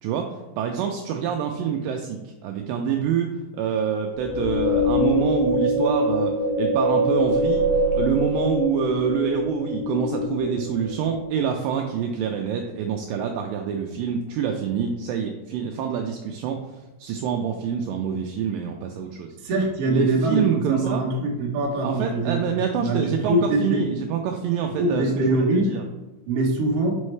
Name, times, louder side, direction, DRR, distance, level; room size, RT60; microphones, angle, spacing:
voice 1, 0.0-7.7 7.9-19.4 19.9-21.1 21.8-25.8, right 7 dB, 85° right, 3 dB, 2.0 m, -26 dB
sound 1, 4.2-11.5, equal, 85° left, 2.7 m, -24 dB
voice 2, 19.4-22.4 22.8-23.8 24.8-25.7 26.3-27.0, right 1 dB, 65° right, -2 dB, 1.5 m, -23 dB
5.6 x 5.2 x 3.2 m, 1.1 s
omnidirectional pair, 4.3 m